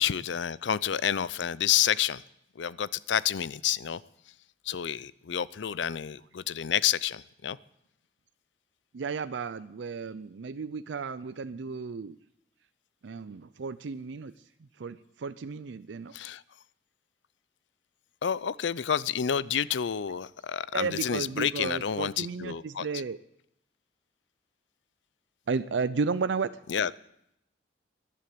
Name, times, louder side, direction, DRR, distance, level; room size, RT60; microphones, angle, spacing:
voice 1, 0.0-2.2 2.6-4.0 4.7-7.6 16.1-16.4 18.2-22.9 26.7-26.9, left 9 dB, 80° left, 20 dB, 0.5 m, -29 dB
voice 2, 8.9-12.2 13.0-14.3 14.8-16.1 20.7-23.2 25.5-26.5, right 5 dB, 80° right, 13 dB, 0.5 m, -33 dB
14.5 x 11.0 x 8.4 m, 0.78 s
head